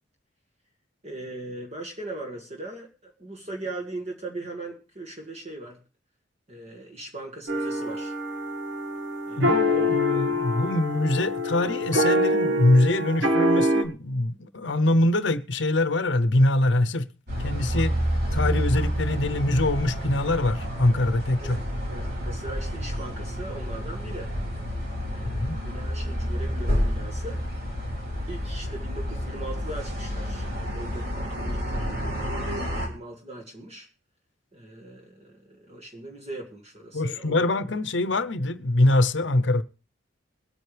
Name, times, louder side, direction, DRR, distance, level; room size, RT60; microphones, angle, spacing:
voice 1, 1.0-5.8 6.5-8.2 9.3-10.3 21.4-21.6 21.9-24.3 25.1-27.4 28.3-33.9 34.5-37.5, right 2 dB, 35° right, 1.9 m, -39 dB
sound 1, 7.5-13.8, left 1 dB, 85° right, 1.9 m, -25 dB
voice 2, 9.4-17.1 17.4-17.9 18.3-21.6 25.2-25.6 36.9-39.6, left 2 dB, 65° left, 0.8 m, -23 dB
sound 2, 17.3-32.9, equal, 55° right, 4.9 m, -29 dB
22.5 x 9.2 x 3.4 m
head